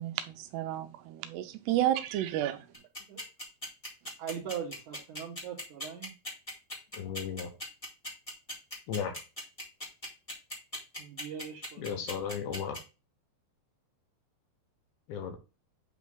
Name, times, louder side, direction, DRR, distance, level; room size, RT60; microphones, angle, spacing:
voice 1, 0.0-2.7, right 13 dB, 90° right, 2.8 m, -31 dB
sound 1, 2.7-12.8, equal, 20° left, 0.9 m, -39 dB
voice 2, 4.2-6.1 11.0-12.1, right 8 dB, 60° right, 2.5 m, -40 dB
voice 3, 6.9-7.5 8.9-9.2 11.8-12.8 15.1-15.4, left 7 dB, 75° left, 2.7 m, -35 dB
8.5 x 3.1 x 3.7 m
omnidirectional pair, 4.8 m